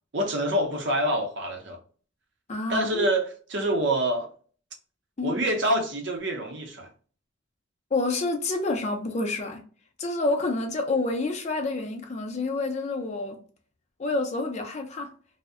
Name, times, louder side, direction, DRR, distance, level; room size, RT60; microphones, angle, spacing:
voice 1, 0.1-1.8 2.7-4.3 5.2-6.9, right 1 dB, 60° right, 0.6 m, -26 dB
voice 2, 2.5-3.1 5.2-5.4 7.9-9.6 10.0-13.4 14.0-15.1, left 3 dB, 35° left, 0.4 m, -28 dB
2.5 x 2.0 x 2.4 m
head